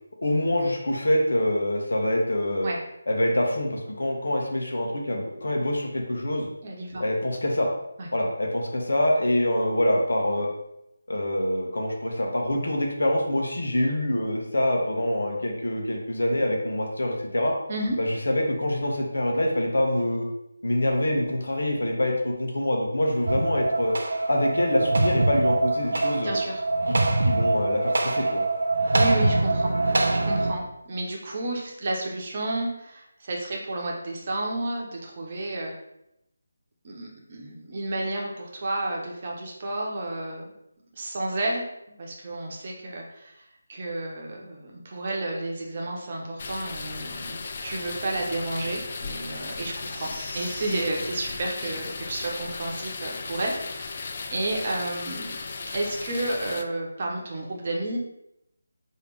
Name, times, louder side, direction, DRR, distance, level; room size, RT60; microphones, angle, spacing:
voice 1, 0.2-2.7 3.1-6.5 7.0-7.7 8.1-10.5 11.1-17.5 18.0-20.3 20.6-24.0 24.3-26.3 26.9-27.0 27.2-28.4, left 1 dB, 60° left, 0 dB, 1.0 m, -25 dB
voice 2, 6.6-7.0 8.0-8.1 17.7-17.9 26.2-26.6 28.9-35.7 36.8-40.5 40.9-43.4 43.7-47.4 47.6-55.4 55.7-58.0, right 2 dB, 35° right, -1 dB, 0.9 m, -31 dB
sound 1, 23.3-30.5, right 2 dB, 55° right, 0.5 m, -24 dB
sound 2, 46.4-56.6, left 4 dB, 40° left, 0.3 m, -36 dB
Crying sobbing, 49.5-51.0 51.6-52.0 52.4-52.5 52.9-53.0 53.5-53.6 53.9-54.0, equal, 10° right, 1.4 m, -44 dB
5.0 x 2.8 x 3.1 m, 0.83 s
figure-of-eight pair, 155°, 0 cm